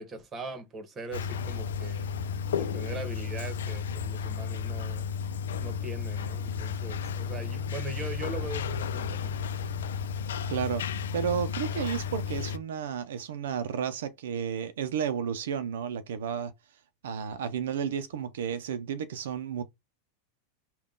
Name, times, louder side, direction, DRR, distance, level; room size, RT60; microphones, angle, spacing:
voice 1, 0.0-2.1 2.6-5.1 5.6-9.4, right 3 dB, 25° right, 1.2 m, -41 dB
sound 1, 1.1-12.6, left 6 dB, 90° left, 0.5 m, -33 dB
voice 2, 10.5-10.8 11.1-16.5 17.0-19.6, right 8 dB, 80° right, 0.5 m, -32 dB
3.7 x 2.3 x 3.7 m
supercardioid pair, 130°, 0 cm